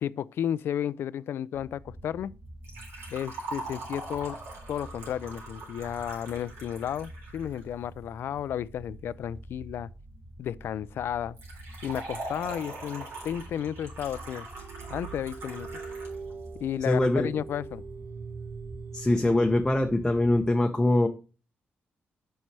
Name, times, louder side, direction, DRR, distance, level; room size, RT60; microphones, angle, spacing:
voice 1, 0.0-2.3 3.1-4.4 4.7-9.9 10.4-11.4 11.8-14.5 14.9-15.7 16.6-17.8, left 10 dB, 75° left, 0.3 m, -33 dB
sound 1, 1.5-20.5, right 1 dB, 5° right, 1.3 m, -48 dB
Liquid, 2.6-7.6 11.4-16.2 16.5-16.6 17.5-17.6, right 2 dB, 90° right, 3.6 m, -42 dB
sound 2, 14.5-20.6, right 5 dB, 55° right, 0.6 m, -42 dB
voice 2, 16.9-17.3 18.9-21.1, left 1 dB, 10° left, 0.7 m, -23 dB
7.5 x 5.5 x 3.3 m
cardioid pair, 125°, 4 cm